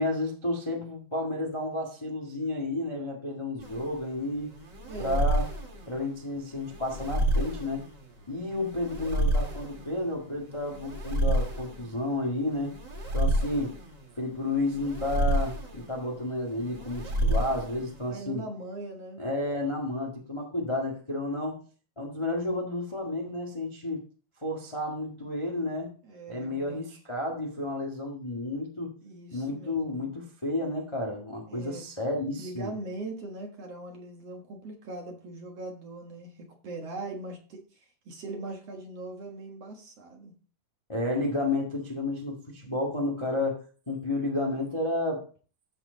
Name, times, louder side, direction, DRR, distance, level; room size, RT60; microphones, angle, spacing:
voice 1, 0.0-4.5 5.0-5.5 5.9-7.8 8.3-12.7 13.1-13.8 14.2-18.4 19.2-21.6 22.0-24.0 24.4-25.9 26.3-28.9 29.3-32.7 40.9-45.3, left 2 dB, 20° left, 0.8 m, -31 dB
sound 1, 3.6-18.1, right 1 dB, 35° right, 2.5 m, -30 dB
voice 2, 4.9-5.3 18.1-19.2 26.0-27.0 29.0-30.1 31.5-31.9 32.4-40.3, right 2 dB, 55° right, 2.2 m, -40 dB
14.0 x 4.6 x 4.0 m
omnidirectional pair, 4.0 m